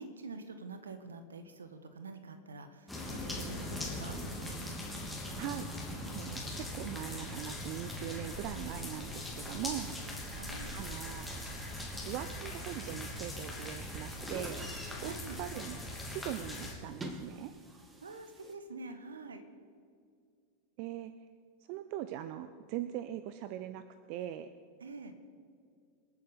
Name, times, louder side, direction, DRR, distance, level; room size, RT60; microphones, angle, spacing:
voice 1, 0.0-4.2 10.3-10.8 15.1-15.4 18.0-19.4 24.8-25.1, right 3 dB, 70° right, 9 dB, 1.4 m, -46 dB
sound 1, 2.9-16.7, left 1 dB, 5° left, 3.2 m, -41 dB
voice 2, 5.4-5.7 6.1-10.0 10.7-11.6 12.0-14.7 15.0-17.5 20.8-21.1 21.7-24.5, right 12 dB, 45° right, 12 dB, 0.6 m, -41 dB
Chatter / Gurgling / Tap, 9.5-18.5, right 1 dB, 15° right, 1.9 m, -50 dB
26.5 x 8.8 x 5.2 m, 2.3 s
figure-of-eight pair, 90°, 0 cm